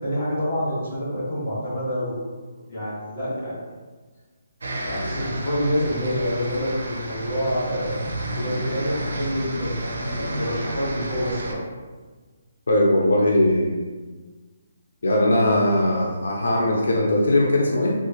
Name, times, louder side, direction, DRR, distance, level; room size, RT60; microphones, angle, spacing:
voice 1, 0.0-2.3 2.7-3.6 4.8-8.0 8.4-11.6, equal, 35° left, -9 dB, 1.2 m, -27 dB
sound 1, 4.6-11.5, right 1 dB, 80° right, 0.6 m, -31 dB
voice 2, 12.7-13.7 15.0-17.9, left 1 dB, 85° left, -2 dB, 0.5 m, -19 dB
3.5 x 2.4 x 2.9 m, 1.4 s
hypercardioid pair, 180°, 0 cm